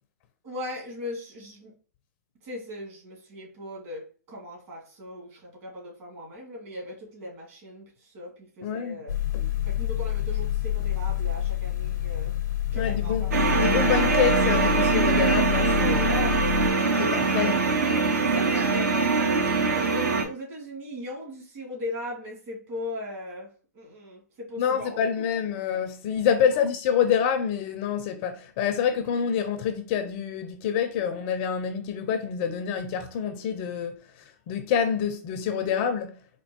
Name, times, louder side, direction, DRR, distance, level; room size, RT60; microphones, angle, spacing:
voice 1, 0.4-1.7 2.4-9.1 9.7-12.4 12.7-13.3 16.1-16.4 18.3-25.2, left 1 dB, 35° right, 2.0 m, -38 dB
voice 2, 8.6-9.0 9.3-9.4 12.7-13.3 13.6-16.2 17.0-17.6 24.6-36.2, left 7 dB, 35° left, 0.5 m, -27 dB
sound 1, 9.1-16.7, left 13 dB, 80° left, 0.6 m, -28 dB
sound 2, 13.3-20.2, right 4 dB, 70° right, 0.9 m, -23 dB
4.3 x 2.6 x 2.8 m
hypercardioid pair, 135°, 10 cm